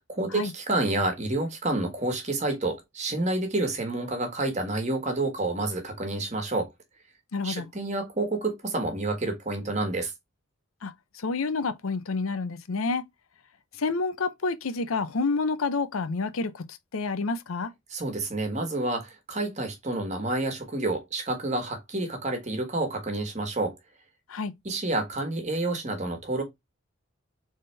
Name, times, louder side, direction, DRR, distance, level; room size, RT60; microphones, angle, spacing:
voice 1, 0.0-6.7 7.4-10.1 17.9-23.8 24.6-26.4, right 2 dB, 35° right, 1.4 m, -29 dB
voice 2, 7.3-7.7 10.8-10.9 11.2-13.0 13.8-17.7 24.3-24.5, left 4 dB, 90° left, 0.7 m, -29 dB
4.2 x 3.6 x 3.3 m
head